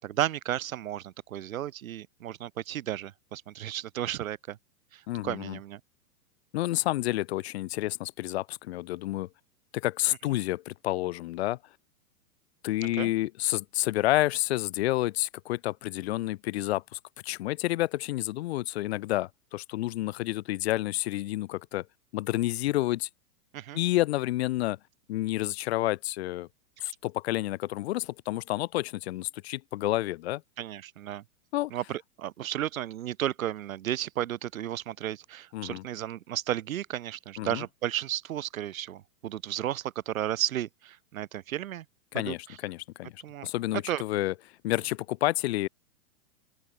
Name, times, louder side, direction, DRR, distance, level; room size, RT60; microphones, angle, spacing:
voice 1, 0.0-4.6 4.9-5.8 12.8-13.1 23.5-23.8 26.8-26.9 30.6-31.2 31.7-41.8 42.1-42.3 43.2-43.5 43.9-44.0, right 12 dB, 60° right, 5.8 m, -33 dB
voice 2, 5.1-5.6 6.5-9.3 9.7-11.6 12.6-21.8 22.1-23.1 23.7-24.8 25.1-26.5 26.8-30.4 31.5-31.7 35.5-35.8 37.4-37.6 42.1-43.1 43.4-44.3 44.6-45.7, left 16 dB, 45° left, 2.7 m, -29 dB
open air
supercardioid pair, 170°, 45 cm